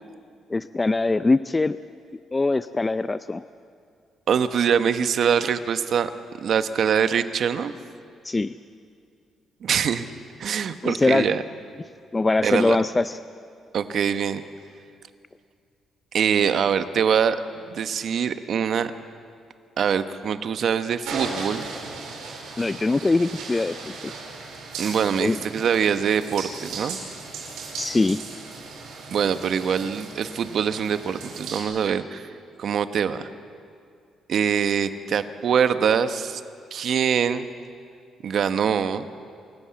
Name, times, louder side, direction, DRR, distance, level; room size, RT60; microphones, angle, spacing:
voice 1, 0.5-1.8 2.3-3.4 8.2-8.6 10.8-11.3 12.1-13.2 22.6-24.1 25.2-25.4 27.8-28.2, left 3 dB, 20° left, 13 dB, 0.5 m, -22 dB
voice 2, 4.3-6.1 6.4-7.7 9.6-10.1 10.4-11.4 12.4-12.8 13.7-14.4 16.1-17.4 17.7-18.9 19.8-21.7 24.8-27.0 29.1-32.3 32.6-33.3 34.3-36.4 36.7-37.5 38.2-39.1, right 7 dB, 60° right, 10 dB, 1.1 m, -23 dB
sound 1, 21.0-31.6, right 4 dB, 90° right, 4.8 m, -37 dB
27.5 x 14.0 x 8.7 m, 2.3 s
cardioid pair, 90°, 0 cm